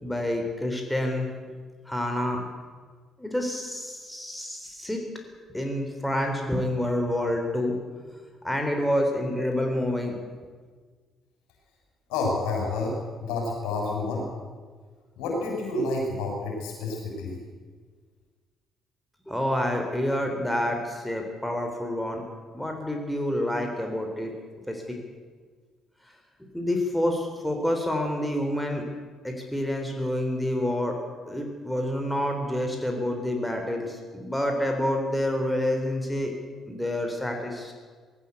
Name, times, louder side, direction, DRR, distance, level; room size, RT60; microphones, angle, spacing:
voice 1, 0.0-1.6 1.9-2.5 3.2-5.0 5.5-7.8 8.0-8.1 8.4-10.2 19.3-22.2 22.5-24.3 24.7-25.0 26.5-28.8 29.2-31.0 31.3-36.3 36.7-37.7, left 1 dB, 5° left, 3 dB, 3.7 m, -28 dB
voice 2, 12.1-14.3 15.2-17.4, left 2 dB, 65° left, -1 dB, 7.4 m, -29 dB
19.0 x 17.5 x 8.2 m, 1.5 s
figure-of-eight pair, 45°, 0 cm